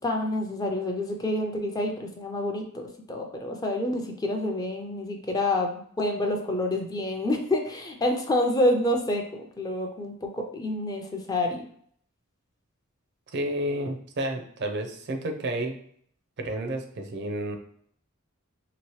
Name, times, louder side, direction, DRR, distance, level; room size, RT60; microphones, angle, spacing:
voice 1, 0.0-11.7, left 1 dB, 20° left, 2 dB, 0.5 m, -28 dB
voice 2, 13.3-15.8 16.4-17.6, right 1 dB, 55° right, 5 dB, 0.5 m, -31 dB
3.0 x 2.9 x 3.1 m, 0.63 s
head